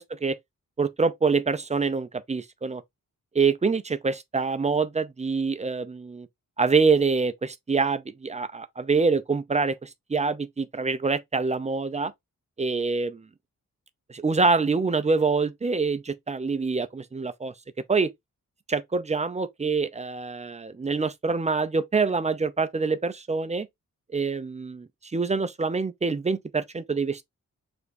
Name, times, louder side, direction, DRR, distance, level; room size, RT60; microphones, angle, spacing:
voice 1, 0.8-2.8 3.3-6.3 6.6-12.1 12.6-13.2 14.1-17.5 17.9-18.1 18.7-23.7 24.1-27.2, right 4 dB, 20° right, 0.3 m, -25 dB
5.1 x 3.5 x 2.5 m
wide cardioid pair, 170°, 33 cm